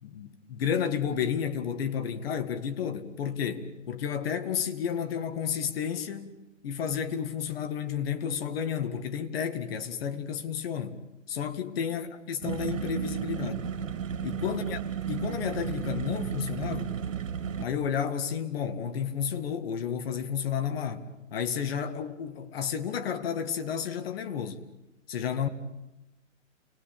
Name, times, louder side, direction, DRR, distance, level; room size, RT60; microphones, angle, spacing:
voice 1, 0.0-6.4 6.6-11.0 11.3-13.7 14.2-14.8 15.1-16.9 17.6-21.0 21.3-24.6 25.1-25.5, left 8 dB, 50° left, 2.0 m, -31 dB
sound 1, 12.4-17.7, right 8 dB, 80° right, 2.7 m, -33 dB
29.0 x 21.0 x 8.7 m
hypercardioid pair, 160°, 38 cm